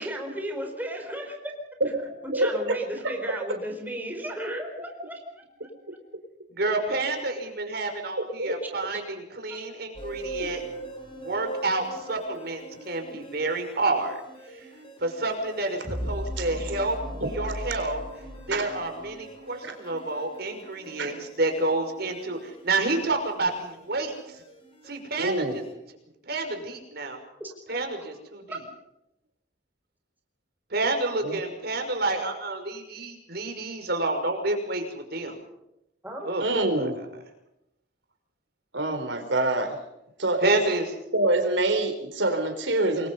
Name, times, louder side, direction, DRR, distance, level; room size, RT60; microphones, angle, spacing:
voice 1, 0.0-1.4 2.2-5.7 8.9-9.0 9.5-9.6 27.4-27.9 28.5-28.6 36.0-36.3, right 1 dB, 10° right, 2 dB, 4.6 m, -35 dB
voice 2, 2.0-2.8 3.0-3.1 8.2-8.6 10.4-10.5 16.4-16.5 17.2-17.5 18.5-18.7 19.6-19.7 21.0-21.1 25.2-25.6 31.2-31.4 36.4-37.0 38.7-39.8 40.2-40.6 41.1-43.1, right 2 dB, 80° right, 5 dB, 4.2 m, -26 dB
voice 3, 6.6-10.6 11.2-14.2 14.6-14.7 15.0-17.0 17.3-18.0 18.5-24.1 24.9-25.6 26.3-27.2 27.7-28.4 30.7-35.4 36.2-36.4 36.8-36.9 40.4-40.9, right 2 dB, 55° right, 5 dB, 5.7 m, -29 dB
sound 1, 9.9-25.7, right 1 dB, 30° left, 5.5 m, -40 dB
28.0 x 22.0 x 5.6 m, 0.84 s
head